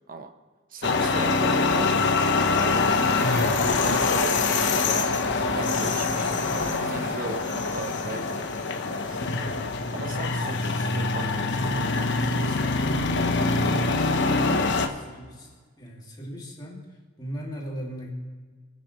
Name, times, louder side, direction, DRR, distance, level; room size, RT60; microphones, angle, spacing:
voice 1, 0.7-1.9 2.5-5.0 5.5-6.4 6.9-9.6 9.9-12.8, right 3 dB, 40° right, 6 dB, 1.0 m, -38 dB
sound 1, 0.8-14.9, left 3 dB, 60° left, 1.1 m, -24 dB
sound 2, 3.1-8.6, right 1 dB, 75° right, 2.1 m, -43 dB
sound 3, 4.2-9.9, equal, 5° right, 2.0 m, -46 dB
voice 2, 14.6-18.1, equal, 20° left, -3 dB, 2.6 m, -40 dB
29.0 x 9.8 x 3.3 m, 1.5 s
head